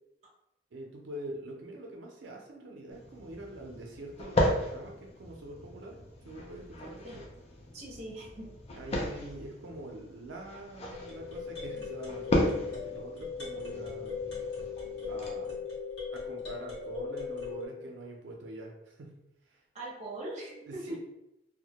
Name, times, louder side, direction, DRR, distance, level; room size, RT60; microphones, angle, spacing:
voice 1, 0.7-6.0 6.2-7.2 8.7-14.2 15.1-15.7 16.1-19.2 19.4-19.6 20.7-21.0, right 1 dB, 90° right, 0 dB, 0.4 m, -44 dB
sound 1, 2.9-15.3, left 1 dB, 35° left, 0.4 m, -35 dB
voice 2, 7.7-8.5 19.7-21.0, right 1 dB, 40° right, -3 dB, 0.6 m, -41 dB
sound 2, 10.9-17.7, left 5 dB, 65° left, 1.0 m, -38 dB
2.1 x 2.0 x 2.8 m, 0.88 s
head